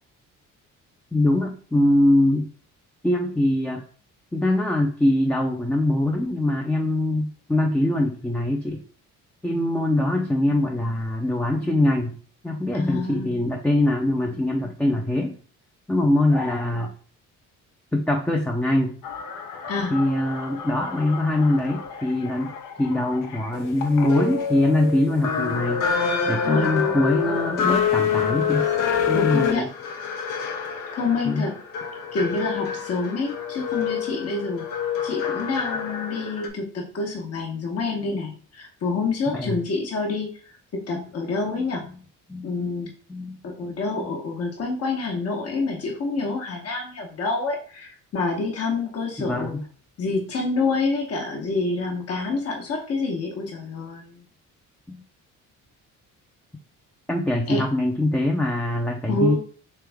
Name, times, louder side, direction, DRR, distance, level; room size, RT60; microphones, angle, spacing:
voice 1, 1.1-2.5 3.0-3.8 4.3-8.8 9.4-12.2 12.4-15.4 15.9-16.9 17.9-18.9 19.9-25.9 26.3-28.6 29.1-29.7 31.3-31.5 39.3-39.6 40.9-41.1 41.7-41.9 42.3-43.4 44.0-44.1 49.2-49.6 54.9-55.0 57.1-59.4, left 1 dB, 5° left, 1 dB, 0.4 m, -23 dB
voice 2, 12.7-13.5 19.7-20.0 26.4-26.7 29.1-29.7 30.9-31.5 32.1-41.8 42.4-42.9 43.4-49.6 50.0-54.2 57.5-57.7 59.1-59.4, left 3 dB, 50° left, 0 dB, 1.0 m, -27 dB
sound 1, 19.0-36.5, left 7 dB, 80° left, 0.8 m, -27 dB
3.5 x 3.3 x 3.4 m, 0.43 s
cardioid pair, 115°, 32 cm